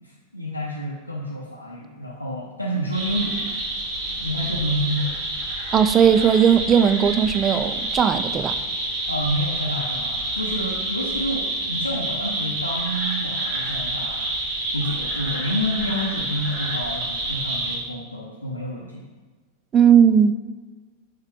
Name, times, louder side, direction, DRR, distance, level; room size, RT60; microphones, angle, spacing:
voice 1, 0.0-3.6 4.1-5.2 9.1-14.3 14.7-19.1, equal, 85° left, -5 dB, 0.7 m, -29 dB
sound 1, 2.9-17.8, right 2 dB, 50° right, 1.5 m, -28 dB
voice 2, 5.7-8.6 19.7-20.4, right 8 dB, 25° right, 11 dB, 0.3 m, -17 dB
6.5 x 4.6 x 3.6 m, 1.4 s
figure-of-eight pair, 90°, 0 cm